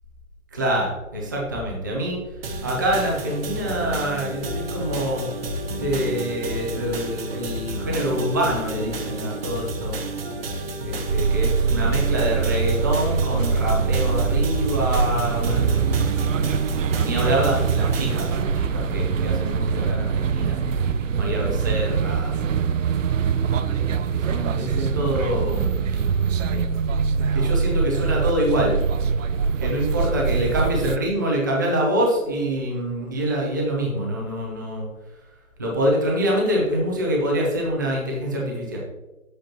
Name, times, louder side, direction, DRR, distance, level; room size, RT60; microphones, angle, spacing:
voice 1, 0.5-2.2 2.6-5.3 5.8-9.9 10.8-16.3 16.9-20.6 21.2-22.7 23.0-23.2 23.5-25.8 26.5-26.6 27.3-28.8 29.6-34.9 35.6-38.8, equal, 15° right, -2 dB, 0.5 m, -25 dB
sound 1, 2.4-18.4, right 1 dB, 45° right, 0.9 m, -31 dB
sound 2, 11.1-31.0, right 6 dB, 65° right, 0.5 m, -23 dB
8.5 x 7.9 x 2.8 m, 1.1 s
hypercardioid pair, 155°, 41 cm